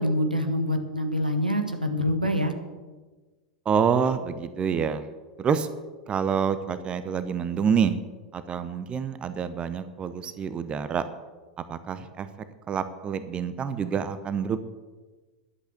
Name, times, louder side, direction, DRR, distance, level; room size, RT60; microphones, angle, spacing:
voice 1, 0.0-2.5, left 1 dB, 85° right, 5 dB, 1.5 m, -25 dB
voice 2, 3.7-5.1 5.4-5.7 6.1-8.0 8.3-11.0 11.7-12.3 12.7-14.6, right 7 dB, 25° right, 12 dB, 0.7 m, -27 dB
11.5 x 8.1 x 8.1 m, 1.3 s
figure-of-eight pair, 90°, 4 cm